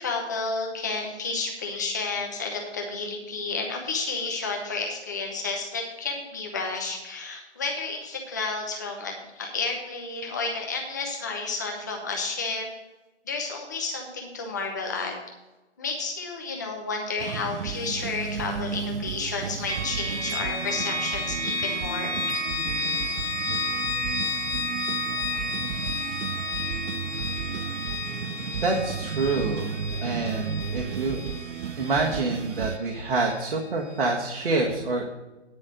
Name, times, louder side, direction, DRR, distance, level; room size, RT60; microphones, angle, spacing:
voice 1, 0.0-12.7 13.3-15.1 15.8-22.2, left 3 dB, 15° left, 1 dB, 0.9 m, -31 dB
sound 1, 17.2-32.8, right 7 dB, 80° right, 0.5 m, -34 dB
sound 2, 19.7-33.5, left 2 dB, 55° left, 2.1 m, -32 dB
voice 2, 28.6-29.7 30.0-31.2 31.8-35.0, right 3 dB, 50° right, -2 dB, 1.5 m, -27 dB
9.8 x 5.3 x 7.7 m, 1.1 s
hypercardioid pair, 175°, 35 cm